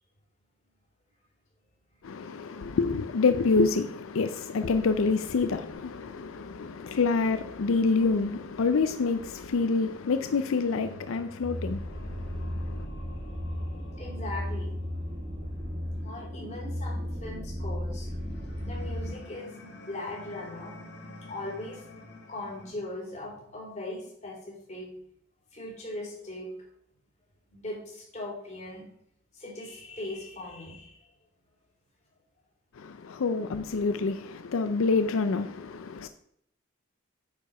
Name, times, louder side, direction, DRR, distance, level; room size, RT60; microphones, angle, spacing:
voice 1, 2.0-12.9 32.7-36.1, left 4 dB, 85° left, 0.5 m, -27 dB
sound 1, 5.7-22.7, left 1 dB, 55° left, 1.6 m, -50 dB
sound 2, 11.4-19.1, equal, 25° right, 1.0 m, -35 dB
voice 2, 14.0-14.8 16.0-18.1 18.7-20.8 21.3-21.9 22.3-24.9 25.5-26.5 27.5-28.8 29.3-31.0, left 2 dB, 35° left, 3.4 m, -39 dB
9.5 x 4.8 x 5.4 m
head